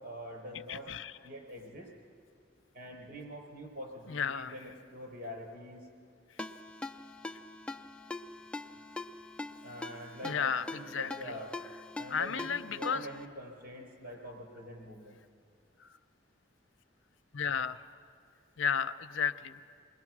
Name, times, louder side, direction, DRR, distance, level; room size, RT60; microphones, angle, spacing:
voice 1, 0.0-0.9 1.2-1.9 2.7-5.9 9.6-11.5 12.0-15.2, equal, 60° right, 1 dB, 5.4 m, -45 dB
voice 2, 0.7-1.1 4.1-4.5 10.2-10.7 10.9-11.3 12.1-13.1 17.3-17.8 18.6-19.6, left 7 dB, 80° left, 10 dB, 0.7 m, -33 dB
Ringtone, 6.4-13.2, left 2 dB, 5° left, 0.5 m, -43 dB
28.5 x 21.0 x 6.2 m, 2.3 s
head